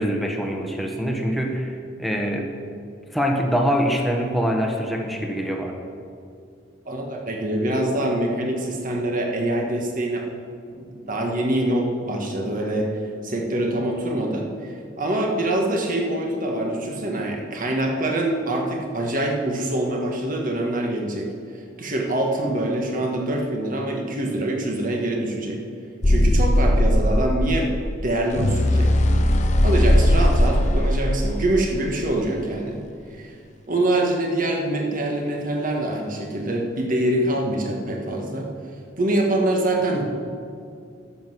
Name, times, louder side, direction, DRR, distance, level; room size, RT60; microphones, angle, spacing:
voice 1, 0.0-2.5 3.1-5.8, equal, ahead, 1 dB, 1.2 m, -24 dB
voice 2, 6.9-10.3 10.7-12.9 13.2-14.7 15.0-21.3 21.8-25.6 26.0-27.7 28.0-28.9 29.6-32.8 33.1-33.3 33.7-38.5 39.0-40.1, right 1 dB, 45° right, 1 dB, 1.7 m, -24 dB
sound 1, 26.0-32.1, left 1 dB, 40° left, 0.8 m, -19 dB
12.0 x 7.9 x 6.1 m, 2.4 s
head